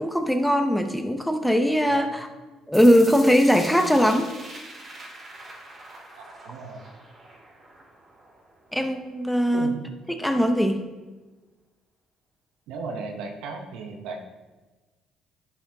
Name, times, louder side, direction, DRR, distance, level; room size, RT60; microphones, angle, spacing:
voice 1, 0.0-2.3 2.7-4.3 8.7-9.7 10.2-10.9, equal, 5° left, 6 dB, 0.7 m, -20 dB
voice 2, 1.9-2.3 6.2-6.9 9.5-9.9 12.7-14.2, right 4 dB, 80° right, 3 dB, 0.8 m, -36 dB
sound 1, 2.7-8.7, right 2 dB, 40° right, 2.6 m, -43 dB
10.5 x 5.6 x 2.8 m, 1.2 s
supercardioid pair, 65°, 0 cm